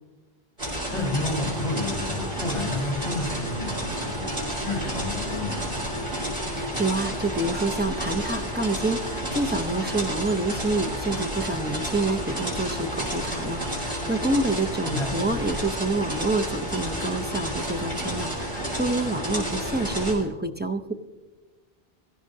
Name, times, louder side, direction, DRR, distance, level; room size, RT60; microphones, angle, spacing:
sound 1, 0.6-20.1, equal, 45° right, 4.7 m, -30 dB
voice 1, 0.9-4.3 4.6-6.0 14.8-15.1, left 2 dB, 45° left, -2 dB, 4.9 m, -30 dB
voice 2, 6.5-20.9, right 2 dB, 15° right, 4 dB, 0.5 m, -27 dB
17.0 x 15.0 x 2.7 m, 1.2 s
omnidirectional pair, 1.0 m